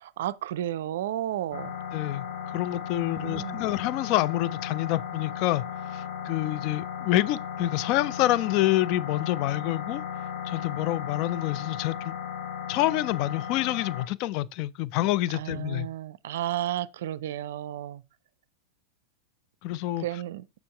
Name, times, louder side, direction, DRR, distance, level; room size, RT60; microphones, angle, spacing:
voice 1, 0.0-1.7 3.0-3.6 15.3-18.0 20.0-20.4, right 12 dB, 55° right, 0.3 m, -32 dB
sound 1, 1.5-14.1, left 8 dB, 60° left, 1.3 m, -36 dB
voice 2, 1.9-2.2 2.5-5.6 5.9-10.0 10.4-12.1 12.7-15.9 19.6-20.2, left 15 dB, 45° left, 0.3 m, -27 dB
6.8 x 5.9 x 3.3 m
figure-of-eight pair, 90°, 0 cm